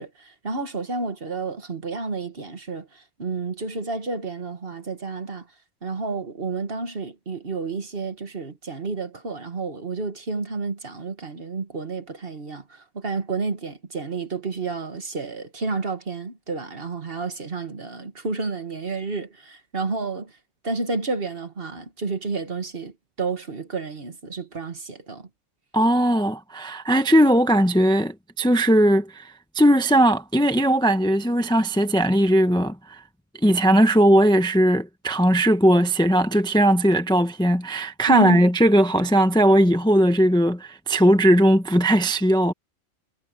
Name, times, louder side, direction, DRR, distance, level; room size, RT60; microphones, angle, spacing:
voice 1, 0.0-5.5 5.8-20.3 20.6-25.3 38.1-38.4, right 3 dB, 45° right, 1.8 m, -30 dB
voice 2, 25.7-33.0 33.4-42.5, right 1 dB, 5° left, 0.8 m, -18 dB
omnidirectional pair, 1.4 m